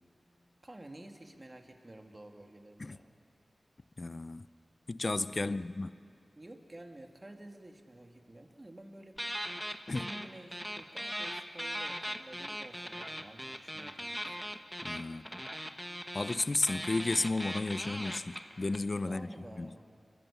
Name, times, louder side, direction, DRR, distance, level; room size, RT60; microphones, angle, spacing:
voice 1, 0.6-3.1 5.3-5.9 6.4-9.5 9.9-14.5 19.1-19.8, right 1 dB, 25° right, 2.2 m, -51 dB
voice 2, 4.0-4.5 4.9-5.9 9.9-10.1 14.8-15.3 16.1-19.8, left 2 dB, 40° left, 0.6 m, -33 dB
sound 1, 9.2-10.3 10.5-18.8, equal, ahead, 1.2 m, -39 dB
28.0 x 23.5 x 7.0 m
wide cardioid pair, 95°, 0 cm